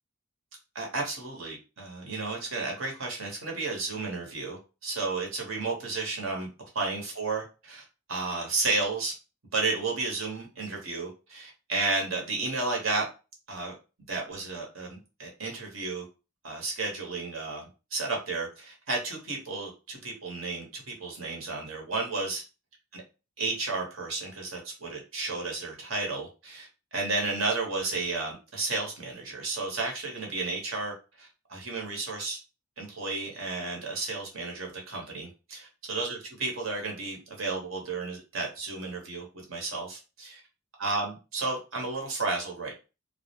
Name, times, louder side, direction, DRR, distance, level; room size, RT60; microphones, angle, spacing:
voice 1, 0.7-6.5 6.7-9.1 9.5-13.1 13.5-13.7 14.1-16.0 16.4-17.6 17.9-22.4 22.9-23.0 23.4-32.4 32.8-40.4 40.8-42.7, right 3 dB, 70° right, 0 dB, 0.9 m, -32 dB
2.3 x 2.0 x 2.8 m, 0.30 s
head